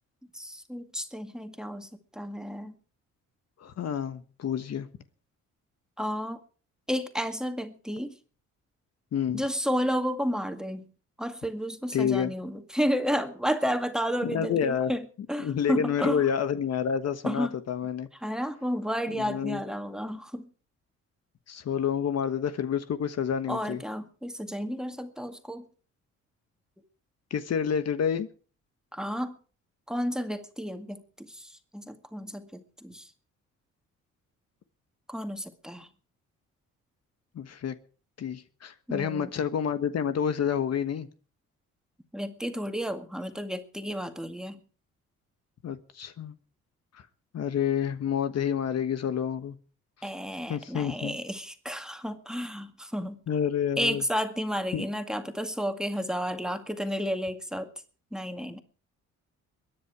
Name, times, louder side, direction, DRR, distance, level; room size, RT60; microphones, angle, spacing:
voice 1, 0.3-2.7 6.0-6.4 6.9-8.2 9.3-10.9 11.2-16.2 17.2-17.6 18.2-20.5 23.5-25.6 28.9-29.4 29.9-33.1 35.1-35.9 38.9-39.3 42.1-44.6 50.0-53.2 53.8-57.7 58.1-58.6, equal, ahead, 7 dB, 2.0 m, -32 dB
voice 2, 3.6-4.9 9.1-9.4 11.9-12.3 14.2-14.9 15.4-18.1 19.2-19.6 21.5-23.8 27.3-28.3 37.3-37.7 38.2-41.1 45.6-46.3 46.9-47.0 47.3-49.6 50.0-50.1 50.5-51.2 53.3-54.0 54.7-54.8, left 8 dB, 55° left, 11 dB, 1.3 m, -29 dB
22.5 x 10.0 x 4.7 m, 0.39 s
cardioid pair, 90°, 30 cm